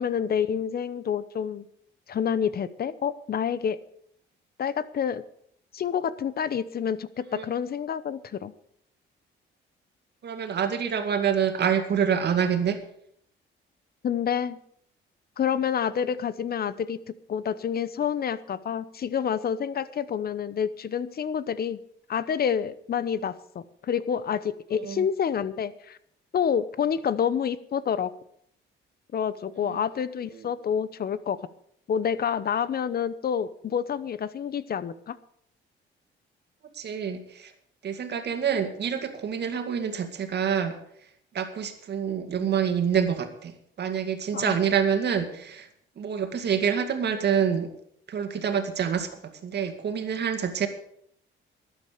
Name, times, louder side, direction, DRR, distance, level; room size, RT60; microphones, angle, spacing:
voice 1, 0.0-1.6 2.1-3.8 4.6-5.2 5.7-8.5 14.0-14.6 15.4-17.0 17.3-21.8 22.1-26.0 26.3-28.1 29.1-31.4 31.9-35.2 44.3-44.6, left 8 dB, 50° left, 16 dB, 0.9 m, -28 dB
voice 2, 10.2-12.8 24.8-25.0 29.6-29.8 30.4-30.5 36.7-37.5 37.8-40.8 41.3-45.7 46.0-47.7 48.1-49.1 49.4-50.7, right 7 dB, 60° right, 7 dB, 2.1 m, -27 dB
13.0 x 9.6 x 6.8 m, 0.68 s
cardioid pair, 90°, 20 cm